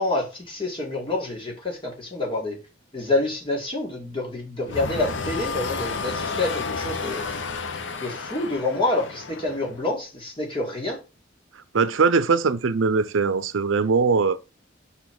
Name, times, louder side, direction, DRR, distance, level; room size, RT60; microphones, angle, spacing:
voice 1, 0.0-2.6 2.9-7.2 8.0-11.0, left 2 dB, 25° left, 2.2 m, -27 dB
sound 1, 4.7-9.8, left 4 dB, 65° left, 0.8 m, -31 dB
voice 2, 11.7-14.4, right 4 dB, 75° right, 0.6 m, -21 dB
5.7 x 4.1 x 6.0 m
head